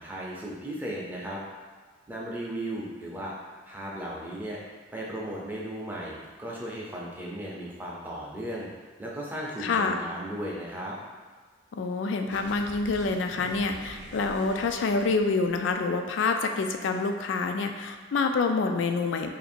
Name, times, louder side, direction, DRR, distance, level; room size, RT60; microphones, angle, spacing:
voice 1, 0.0-1.4 2.1-3.3 3.7-4.6 4.9-8.7 9.0-11.0, right 1 dB, 10° right, -4 dB, 0.6 m, -36 dB
voice 2, 9.6-10.1 11.7-19.3, left 4 dB, 65° left, 5 dB, 0.3 m, -27 dB
sound 1, 12.3-16.0, right 2 dB, 60° right, 0.4 m, -46 dB
2.8 x 2.6 x 4.3 m, 1.5 s
head